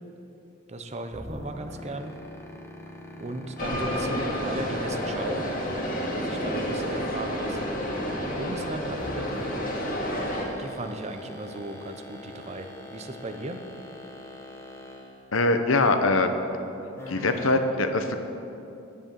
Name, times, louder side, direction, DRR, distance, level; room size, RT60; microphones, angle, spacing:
voice 1, 0.7-2.2 3.2-5.5 6.1-9.3 10.6-13.7, right 2 dB, 35° right, 8 dB, 0.7 m, -36 dB
sound 1, 1.1-7.2 9.0-15.2 17.0-17.5, left 1 dB, 15° left, 1.3 m, -42 dB
sound 2, 3.6-10.4, equal, 45° left, 2.0 m, -30 dB
voice 2, 15.3-16.3 17.1-18.2, left 2 dB, 85° left, 7 dB, 1.0 m, -22 dB
10.5 x 9.9 x 7.5 m, 2.8 s
head